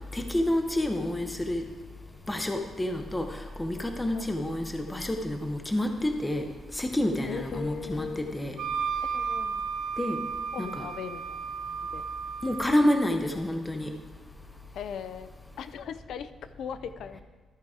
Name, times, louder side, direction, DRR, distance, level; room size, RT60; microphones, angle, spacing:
voice 1, 0.1-1.6 2.3-6.4 6.7-8.6 10.0-10.2 10.6-10.9 12.4-13.9, left 1 dB, 10° left, 5 dB, 0.5 m, -28 dB
voice 2, 7.3-8.4 9.1-9.6 10.5-12.0 14.7-15.3 15.6-17.2, left 7 dB, 70° left, 12 dB, 0.4 m, -39 dB
Wind instrument woodwind instrument, 8.6-13.1, right 6 dB, 90° right, 0.6 m, -33 dB
13.0 x 4.7 x 4.8 m, 1.4 s
wide cardioid pair, 170°, 0 cm